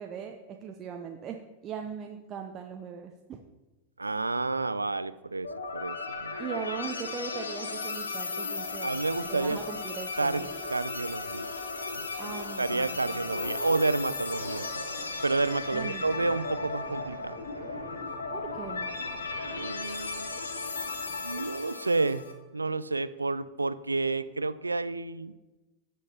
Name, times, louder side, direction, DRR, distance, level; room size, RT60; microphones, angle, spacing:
voice 1, 0.0-1.4 1.6-3.4 6.4-9.0 9.3-10.5 12.2-13.2 15.7-16.3 18.3-18.9, right 7 dB, 30° right, 3 dB, 0.7 m, -39 dB
voice 2, 4.0-5.5 5.7-6.6 8.8-9.6 10.2-10.4 10.7-11.5 11.9-12.3 12.6-14.8 15.2-17.4 19.5-20.3 21.2-22.2 22.5-25.3, right 3 dB, 80° right, 15 dB, 0.3 m, -30 dB
sound 1, 5.4-22.3, left 4 dB, 70° left, 1.0 m, -36 dB
sound 2, 8.5-21.5, equal, 85° left, 1.8 m, -46 dB
15.5 x 6.4 x 2.8 m, 1.1 s
figure-of-eight pair, 90°, 0 cm